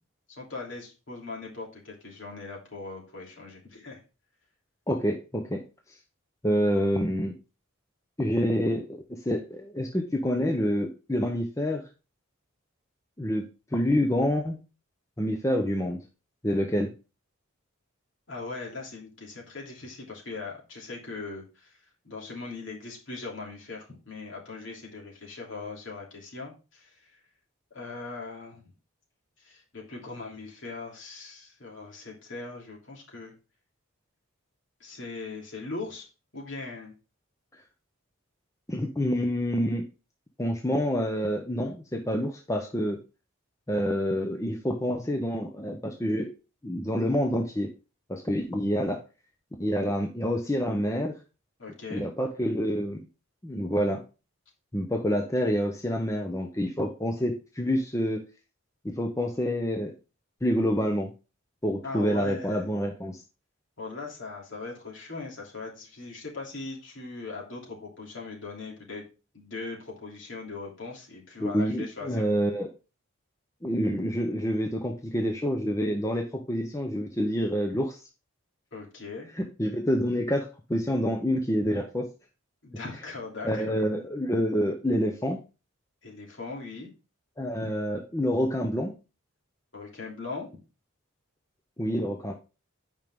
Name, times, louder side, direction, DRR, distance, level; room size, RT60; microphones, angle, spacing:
voice 1, 0.3-4.0 18.3-27.2 27.7-28.7 29.4-33.3 34.8-36.1 36.3-36.9 51.6-52.1 61.8-62.7 63.8-69.0 69.3-72.2 78.7-79.3 82.6-83.7 86.0-86.9 87.6-87.7 89.7-90.5, left 3 dB, 60° left, -2 dB, 3.0 m, -40 dB
voice 2, 4.9-5.6 6.4-7.4 8.2-11.8 13.2-13.5 13.7-14.6 15.2-16.0 16.4-16.9 38.7-39.9 40.4-43.0 43.7-46.3 46.6-47.7 48.1-49.0 49.6-51.2 51.9-53.1 53.4-54.0 54.7-58.2 58.8-59.9 60.4-61.1 61.6-63.2 71.4-72.7 73.6-78.0 79.4-82.1 83.4-85.4 87.4-88.9 91.8-92.3, equal, 15° left, 3 dB, 0.7 m, -27 dB
8.9 x 5.3 x 3.6 m, 0.32 s
head